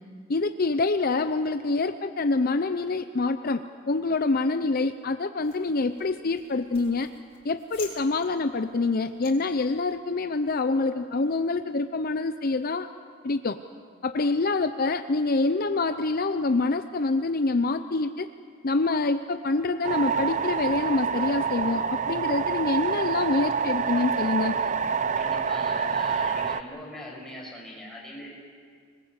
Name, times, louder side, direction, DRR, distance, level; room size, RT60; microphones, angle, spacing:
voice 1, 0.3-3.6 3.9-7.1 7.4-12.9 13.2-13.6 14.0-18.3 18.6-24.6, left 3 dB, 50° left, 10 dB, 0.6 m, -26 dB
sound 1, 5.4-10.0, left 5 dB, 30° left, 4.4 m, -49 dB
sound 2, 19.8-26.6, right 6 dB, 40° right, 0.6 m, -27 dB
voice 2, 25.2-28.3, left 1 dB, ahead, -3 dB, 6.0 m, -41 dB
25.5 x 20.0 x 8.1 m, 2.1 s
head